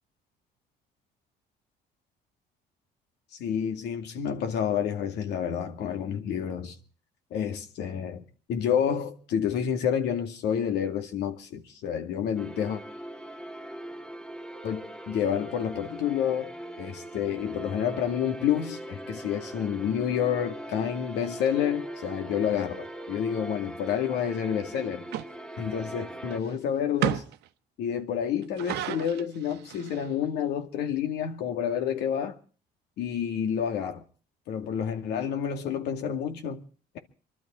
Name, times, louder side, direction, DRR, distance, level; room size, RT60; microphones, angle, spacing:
voice 1, 3.4-6.8 7.3-12.8 14.6-16.5 16.8-25.1 25.6-27.2 27.8-32.4 33.0-34.0 34.5-36.6, left 8 dB, 80° left, 2.4 m, -29 dB
sound 1, 12.4-26.4, right 1 dB, 5° left, 1.7 m, -41 dB
sound 2, 25.1-25.3 26.3-26.5 27.0-27.5 28.4-30.1, right 13 dB, 80° right, 0.9 m, -32 dB
24.5 x 12.5 x 4.4 m
cardioid pair, 110°, 17 cm